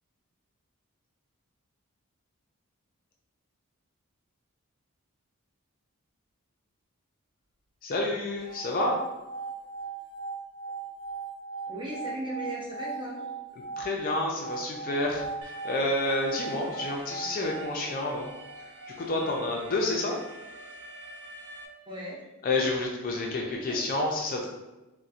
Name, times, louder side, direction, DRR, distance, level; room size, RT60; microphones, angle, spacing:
voice 1, 7.8-9.0 13.8-18.3 19.0-20.2 22.4-24.5, left 2 dB, 40° left, 0 dB, 0.4 m, -29 dB
sound 1, 8.4-18.5, right 4 dB, 15° left, 1.0 m, -39 dB
voice 2, 11.7-13.3 21.9-22.3 23.2-23.8, right 1 dB, 20° right, -5 dB, 0.7 m, -37 dB
Alarm, 15.4-21.7, right 1 dB, 55° right, 0.4 m, -46 dB
4.0 x 2.0 x 2.4 m, 1.1 s
head